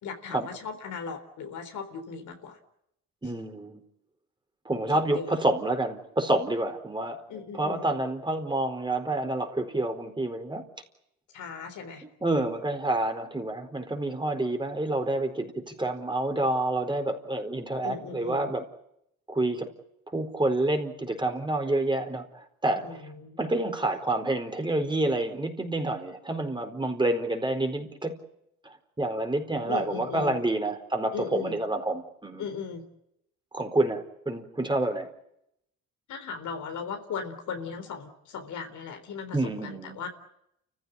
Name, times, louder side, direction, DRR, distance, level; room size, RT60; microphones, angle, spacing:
voice 1, 0.0-2.6 3.2-3.3 4.9-5.3 7.3-7.9 11.3-12.0 17.8-18.5 22.8-23.4 29.6-30.4 31.1-31.6 32.4-32.9 36.1-40.1, left 6 dB, 75° left, 6 dB, 3.9 m, -37 dB
voice 2, 3.2-3.8 4.6-7.2 7.6-10.6 12.2-18.6 19.3-19.7 20.1-23.0 23.4-28.1 28.6-32.4 33.5-35.1 39.3-40.0, right 2 dB, 15° right, 5 dB, 4.2 m, -28 dB
29.5 x 15.5 x 10.0 m, 0.80 s
cardioid pair, 90°, 30 cm